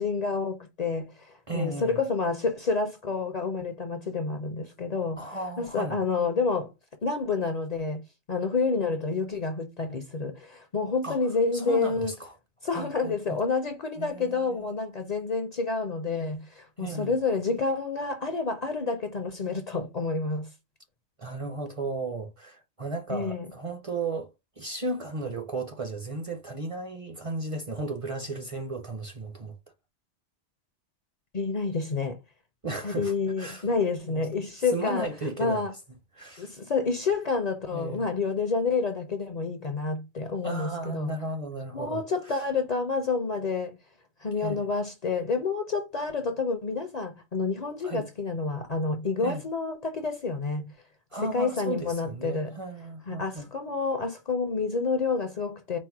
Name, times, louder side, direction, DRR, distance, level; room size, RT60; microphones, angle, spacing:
voice 1, 0.0-6.7 7.0-8.0 8.3-12.1 12.6-20.5 23.1-23.5 31.3-32.2 32.8-35.1 35.4-35.7 36.4-41.1 41.7-43.8 44.2-50.7 51.2-52.5 53.1-55.8, left 4 dB, 45° left, 0.6 m, -29 dB
voice 2, 1.5-2.0 5.2-6.0 11.0-11.2 11.5-12.3 12.7-13.4 14.0-14.7 16.8-17.1 21.2-24.3 24.6-29.5 32.6-33.6 34.1-34.2 34.7-35.6 36.2-36.5 37.7-38.1 40.4-42.4 44.4-44.7 47.8-48.1 49.2-49.4 51.1-53.5, right 2 dB, 35° right, 0.6 m, -35 dB
4.3 x 2.1 x 4.6 m
omnidirectional pair, 1.1 m